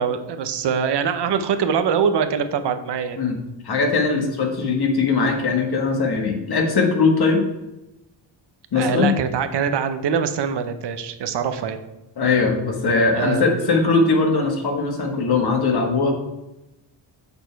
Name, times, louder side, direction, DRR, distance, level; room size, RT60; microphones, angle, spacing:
voice 1, 0.0-3.2 8.8-11.8 13.1-13.9, right 7 dB, 65° right, 9 dB, 0.8 m, -23 dB
voice 2, 3.6-7.4 8.7-9.1 12.2-16.1, left 4 dB, 55° left, 2 dB, 1.7 m, -20 dB
7.2 x 6.7 x 4.6 m, 0.97 s
wide cardioid pair, 135°, 46 cm